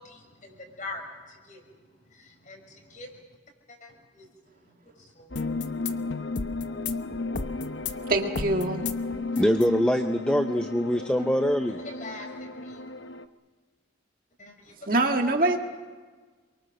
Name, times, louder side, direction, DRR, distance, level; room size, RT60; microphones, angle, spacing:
voice 1, 0.0-1.8 2.0-3.2 3.7-5.3 9.3-9.4 11.8-12.8 14.4-14.7 15.1-15.4, left 2 dB, 40° left, 3 dB, 5.2 m, -44 dB
sound 1, 5.3-13.2, left 3 dB, 75° left, 1.0 m, -33 dB
voice 2, 8.1-8.8 14.9-15.6, right 2 dB, 45° right, 3 dB, 1.9 m, -24 dB
voice 3, 9.4-11.8, equal, 5° left, 7 dB, 0.7 m, -24 dB
28.5 x 23.5 x 6.5 m, 1.4 s
head